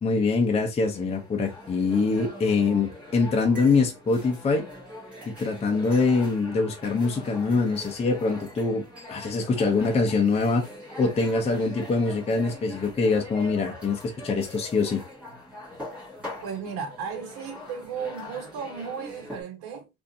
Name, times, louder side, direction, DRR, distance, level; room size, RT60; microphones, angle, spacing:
voice 1, 0.0-4.7 5.3-10.6 11.0-15.0, left 4 dB, 15° left, 0.6 m, -24 dB
sound 1, 0.9-19.4, left 1 dB, 5° right, 1.6 m, -42 dB
voice 2, 16.4-19.9, right 6 dB, 75° right, 1.2 m, -35 dB
3.2 x 2.6 x 2.6 m
cardioid pair, 150°, 39 cm